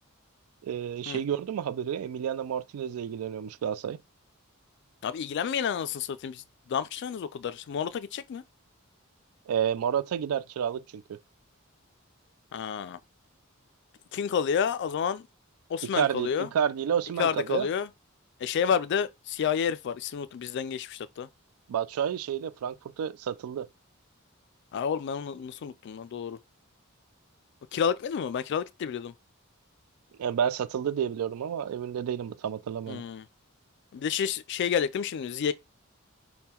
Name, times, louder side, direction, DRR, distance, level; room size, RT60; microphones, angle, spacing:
voice 1, 0.6-4.0 9.5-11.2 15.9-17.7 21.7-23.7 30.2-33.0, right 8 dB, 90° right, 0.3 m, -30 dB
voice 2, 5.0-8.4 12.5-13.0 14.1-15.3 15.7-16.5 17.2-17.9 18.4-21.3 24.7-26.4 27.7-29.1 32.9-33.3 33.9-35.5, left 7 dB, 55° left, 0.3 m, -30 dB
3.6 x 2.2 x 4.3 m
head